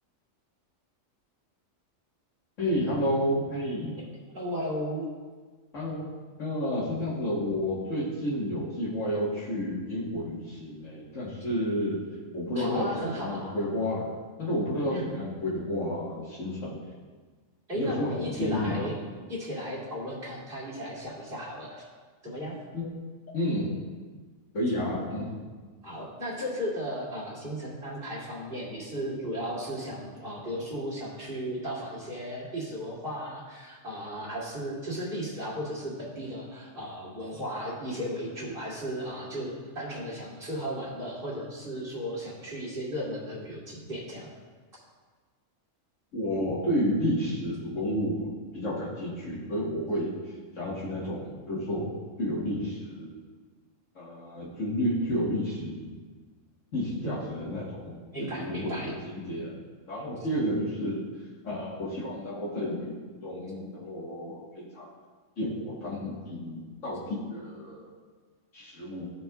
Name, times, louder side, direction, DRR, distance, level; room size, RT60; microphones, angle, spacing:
voice 1, 2.6-4.0 5.7-6.1 6.4-12.0 12.3-14.1 14.4-16.8 17.7-18.8 22.7-22.9 23.3-23.7 24.5-25.3 46.1-50.2 50.5-51.2 51.5-51.9 52.2-53.2 54.0-55.9 56.7-58.9 59.3-59.5 59.9-61.0 61.4-62.9 63.2-64.9 65.4-67.9 68.5-69.1, equal, 65° left, -8 dB, 1.9 m, -31 dB
voice 2, 4.3-5.1 12.6-13.5 14.9-15.1 17.7-18.9 19.3-21.8 22.2-22.6 25.8-44.3 44.7-44.8 57.0-57.1 58.1-58.9, equal, 45° right, -7 dB, 2.8 m, -35 dB
15.0 x 5.3 x 2.3 m, 1.4 s
omnidirectional pair, 1.4 m